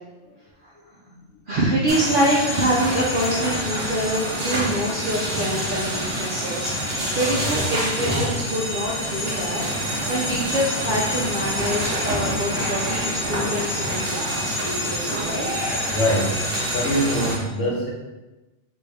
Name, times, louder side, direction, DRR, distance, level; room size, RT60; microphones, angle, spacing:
voice 1, 1.5-15.5, right 1 dB, 55° right, -5 dB, 0.6 m, -26 dB
sound 1, 1.9-17.4, equal, 75° right, 1.3 m, -26 dB
voice 2, 15.9-16.4 16.7-17.9, equal, 90° left, -3 dB, 1.2 m, -23 dB
3.2 x 2.6 x 3.3 m, 1.1 s
omnidirectional pair, 1.2 m